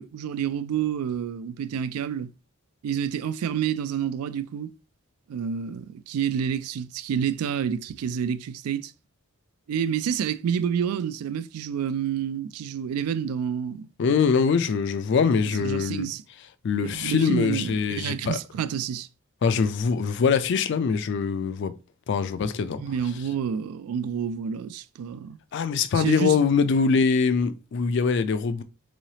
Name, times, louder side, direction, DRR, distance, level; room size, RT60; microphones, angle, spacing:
voice 1, 0.0-2.3 2.8-4.7 5.3-8.9 9.7-13.9 15.6-16.2 16.8-19.1 22.8-25.4 25.9-26.4, right 8 dB, 90° right, 0.3 m, -29 dB
voice 2, 14.0-16.1 16.6-18.4 19.4-21.7 22.1-22.8 25.5-28.6, left 5 dB, 55° left, 0.3 m, -23 dB
3.9 x 3.1 x 2.7 m
head